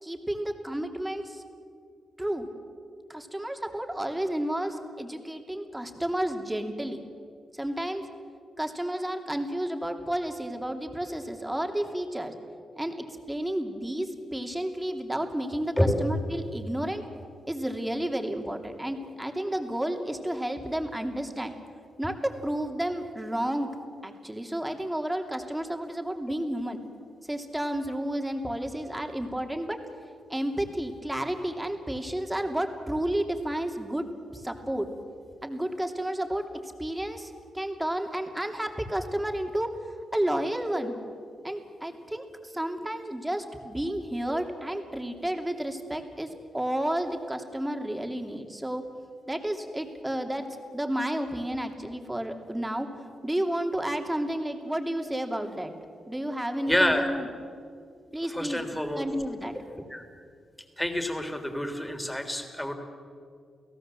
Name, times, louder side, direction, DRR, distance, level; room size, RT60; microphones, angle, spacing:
voice 1, 0.0-1.4 2.2-2.5 3.1-7.0 7.5-8.1 8.6-12.3 12.7-12.9 13.3-17.0 17.5-21.5 22.0-23.7 24.0-26.8 27.3-29.8 30.3-34.0 34.3-34.9 35.4-36.4 36.8-39.7 40.1-41.0 41.4-48.8 49.3-50.5 50.7-52.9 53.2-55.7 56.1-57.3 58.1-58.7 59.0-59.5, right 1 dB, 10° right, 4 dB, 2.8 m, -31 dB
voice 2, 56.7-57.1 58.3-59.0 59.9-60.0 60.8-62.7, left 1 dB, 5° left, 6 dB, 3.4 m, -27 dB
30.0 x 17.0 x 7.6 m, 2.3 s
cardioid pair, 75°, 0 cm